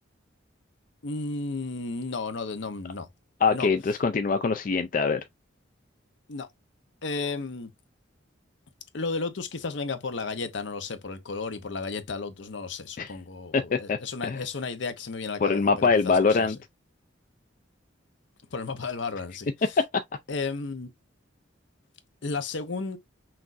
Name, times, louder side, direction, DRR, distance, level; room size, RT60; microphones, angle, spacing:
voice 1, 1.0-3.1 3.5-3.7 6.3-6.5 7.0-7.7 8.9-16.5 18.5-19.5 20.3-20.9 22.2-23.0, left 4 dB, 70° left, 0.7 m, -33 dB
voice 2, 3.4-5.2 13.0-13.1 13.5-14.4 15.4-16.6 19.6-20.0, left 4 dB, 45° left, 0.3 m, -24 dB
5.9 x 2.5 x 2.5 m
head